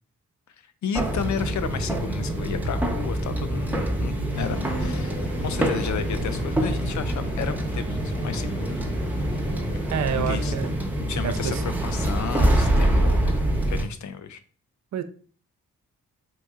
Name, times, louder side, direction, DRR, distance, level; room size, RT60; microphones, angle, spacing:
voice 1, 0.8-8.9 10.1-10.5 11.1-13.3 13.7-14.4, left 7 dB, 50° left, 11 dB, 0.4 m, -33 dB
sound 1, 0.9-13.8, right 1 dB, 5° right, 0.7 m, -25 dB
sound 2, 4.3-10.7, left 1 dB, 90° left, 1.5 m, -38 dB
voice 2, 9.9-10.7 11.2-11.6 14.9-15.0, right 8 dB, 50° right, 9 dB, 0.4 m, -28 dB
3.9 x 2.6 x 2.3 m, 0.43 s
supercardioid pair, 40°, 38 cm